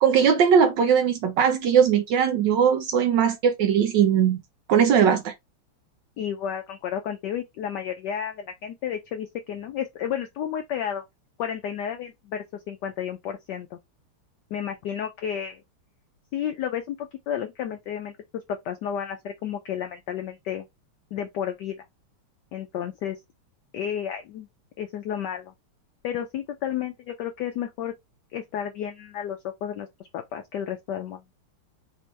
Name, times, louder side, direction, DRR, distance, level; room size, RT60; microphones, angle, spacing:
voice 1, 0.0-4.4 4.7-5.3, right 7 dB, 75° right, 1.0 m, -20 dB
voice 2, 6.2-11.0 11.4-13.8 14.5-15.6 16.3-20.7 21.1-21.8 22.5-23.2 23.7-24.5 24.8-25.5 26.0-27.9 28.3-31.2, left 9 dB, 85° left, 0.9 m, -32 dB
4.3 x 2.9 x 3.1 m
omnidirectional pair, 2.4 m